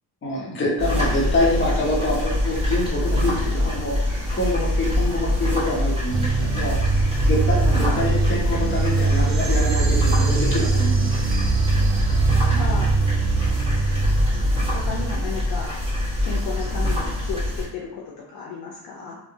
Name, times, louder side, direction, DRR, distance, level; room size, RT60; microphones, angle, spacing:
voice 1, 0.2-11.3, left 1 dB, 30° left, -3 dB, 0.8 m, -26 dB
sound 1, 0.8-17.6, left 1 dB, 15° right, 1.4 m, -24 dB
sound 2, 6.1-15.2, right 4 dB, 50° right, 0.5 m, -23 dB
voice 2, 7.7-8.1 12.5-12.9 14.7-15.8 16.3-19.1, left 4 dB, 70° left, -2 dB, 0.5 m, -33 dB
2.6 x 2.1 x 2.7 m, 0.87 s
cardioid pair, 90°, 37 cm